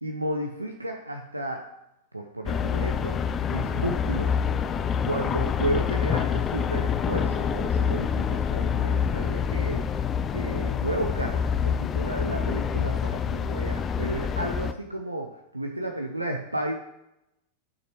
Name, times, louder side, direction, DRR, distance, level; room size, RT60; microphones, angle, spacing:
voice 1, 0.0-1.6 2.1-3.1 3.5-4.3 5.1-9.8 10.3-16.8, right 1 dB, 85° right, 3 dB, 0.7 m, -32 dB
sound 1, 2.5-14.7, left 7 dB, 25° left, 0.4 m, -26 dB
12.0 x 5.7 x 3.1 m, 0.86 s
figure-of-eight pair, 90°, 0 cm